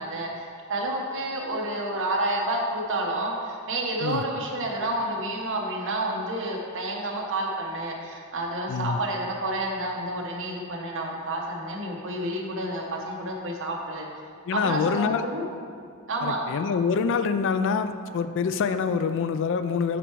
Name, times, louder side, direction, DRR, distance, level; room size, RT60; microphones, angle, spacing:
voice 1, 0.0-14.1 14.5-15.4 16.1-16.4, right 1 dB, 60° right, -1 dB, 1.1 m, -29 dB
voice 2, 8.7-9.0 14.5-15.2 16.2-20.0, left 5 dB, 55° left, 10 dB, 0.3 m, -25 dB
7.9 x 4.5 x 4.6 m, 2.2 s
head